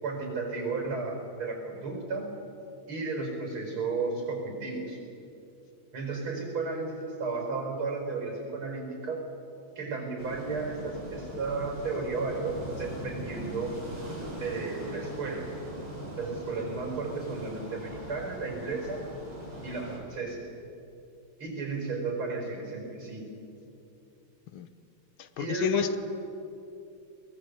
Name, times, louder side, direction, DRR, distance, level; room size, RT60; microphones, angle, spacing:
voice 1, 0.0-2.3 2.9-5.0 5.9-9.2 9.8-13.8 14.4-15.5 16.2-19.0 19.6-20.4 21.4-23.3 25.4-26.0, right 3 dB, 85° right, 2 dB, 5.6 m, -33 dB
sound 1, 10.2-20.0, right 1 dB, 55° right, 6.4 m, -41 dB
voice 2, 25.2-26.0, left 7 dB, 75° left, 12 dB, 1.8 m, -29 dB
22.0 x 19.5 x 8.0 m, 2.7 s
omnidirectional pair, 2.3 m